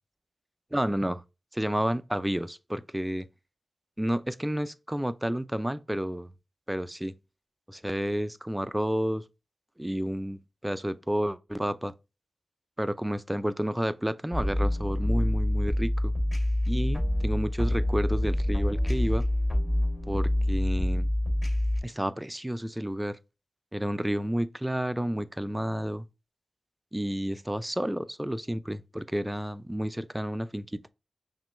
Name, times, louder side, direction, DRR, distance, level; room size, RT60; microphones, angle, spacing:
voice 1, 0.7-1.2 1.5-3.3 4.0-6.3 6.7-7.1 7.7-9.2 9.8-11.9 12.8-16.1 16.7-19.3 20.1-21.1 21.8-23.2 23.7-26.0 26.9-30.9, equal, 10° right, 0.4 m, -30 dB
sound 1, 14.3-21.8, left 1 dB, 40° left, 2.6 m, -26 dB
5.9 x 2.2 x 3.1 m
cardioid pair, 40°, 0 cm